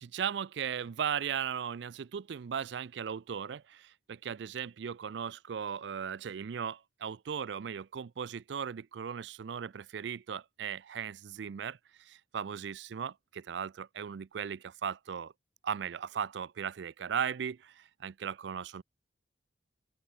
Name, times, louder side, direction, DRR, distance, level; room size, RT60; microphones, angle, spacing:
voice 1, 0.0-15.3 15.6-18.8, right 7 dB, 70° right, 0.4 m, -37 dB
open air
head